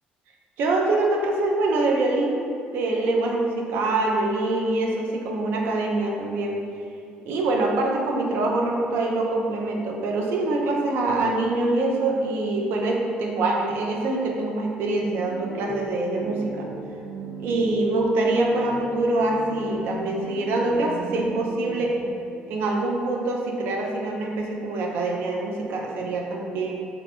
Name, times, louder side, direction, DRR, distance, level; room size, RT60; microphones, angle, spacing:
voice 1, 0.6-2.4 2.7-6.6 7.3-16.7 17.4-22.0 22.5-26.7, right 2 dB, 75° right, 0 dB, 0.3 m, -24 dB
sound 1, 15.0-22.1, right 2 dB, 20° left, 0.5 m, -36 dB
2.5 x 2.0 x 2.7 m, 2.4 s
supercardioid pair, 65°, 4 cm